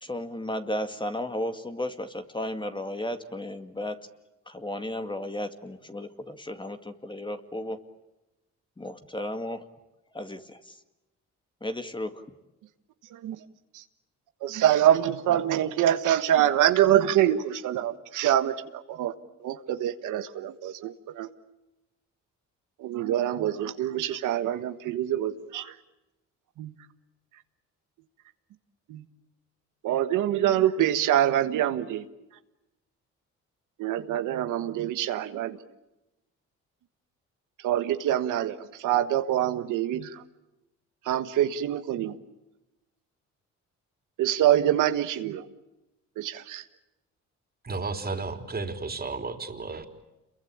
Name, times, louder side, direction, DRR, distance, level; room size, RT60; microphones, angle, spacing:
voice 1, 0.0-4.0 4.5-7.8 8.8-9.6 10.1-10.8 11.6-12.2, left 1 dB, 15° left, 7 dB, 2.1 m, -34 dB
voice 2, 14.4-19.1 19.4-21.3 22.8-25.8 26.6-26.7 28.9-29.0 29.8-32.0 33.8-35.6 37.6-40.2 41.0-42.2 44.2-45.4 46.2-46.6, right 11 dB, 85° right, 9 dB, 1.4 m, -25 dB
voice 3, 47.6-49.8, right 4 dB, 30° right, 6 dB, 3.6 m, -33 dB
28.0 x 23.0 x 8.7 m, 0.97 s
cardioid pair, 90°, 30 cm